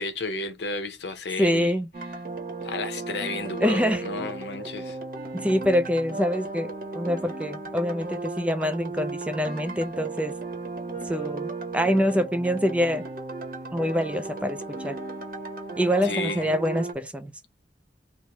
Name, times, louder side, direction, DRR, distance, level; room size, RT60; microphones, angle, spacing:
voice 1, 0.0-1.8 2.6-5.0 16.0-16.5, left 3 dB, 75° left, 0.8 m, -32 dB
voice 2, 1.4-1.9 3.6-4.0 5.3-10.3 11.0-13.0 13.7-15.0 15.8-17.3, equal, 5° right, 0.3 m, -25 dB
sound 1, 1.9-16.9, right 3 dB, 55° right, 0.8 m, -35 dB
3.1 x 2.1 x 3.9 m
head